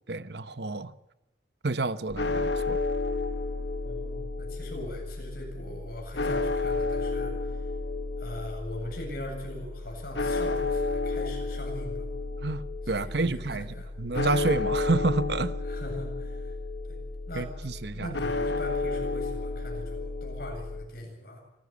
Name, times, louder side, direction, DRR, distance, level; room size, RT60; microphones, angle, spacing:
voice 1, 0.1-0.9 1.6-2.8 12.4-15.5 17.3-18.1, right 3 dB, 65° right, 0.9 m, -29 dB
sound 1, 2.1-20.9, left 3 dB, 75° left, 1.3 m, -32 dB
voice 2, 3.8-7.7 8.2-12.1 12.8-13.9 15.6-16.5 16.9-17.0 17.3-17.5 17.9-21.4, left 1 dB, 55° left, 7.9 m, -41 dB
26.0 x 14.0 x 8.5 m
head